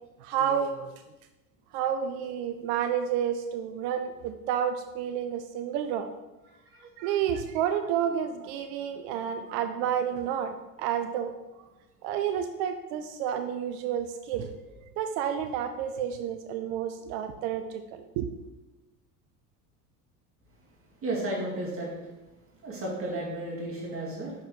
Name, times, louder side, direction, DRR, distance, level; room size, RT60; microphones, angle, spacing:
voice 1, 0.2-0.9 1.7-6.1 7.0-11.3 12.0-14.5 15.0-18.3, right 9 dB, 40° right, 8 dB, 0.5 m, -30 dB
voice 2, 21.0-21.9 22.6-24.3, right 1 dB, 25° right, -4 dB, 2.2 m, -33 dB
6.0 x 5.4 x 3.8 m, 1.0 s
figure-of-eight pair, 70°, 48 cm